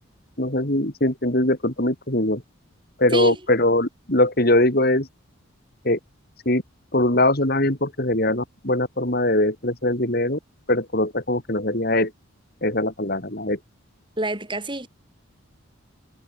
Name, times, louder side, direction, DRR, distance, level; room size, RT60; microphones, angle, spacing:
voice 1, 0.4-2.4 3.0-5.1 5.9-6.0 6.5-6.6 6.9-10.4 10.7-12.1 12.6-13.6, left 1 dB, 45° left, 3.6 m, -21 dB
voice 2, 3.1-3.4 14.2-14.9, right 1 dB, 20° right, 4.4 m, -26 dB
head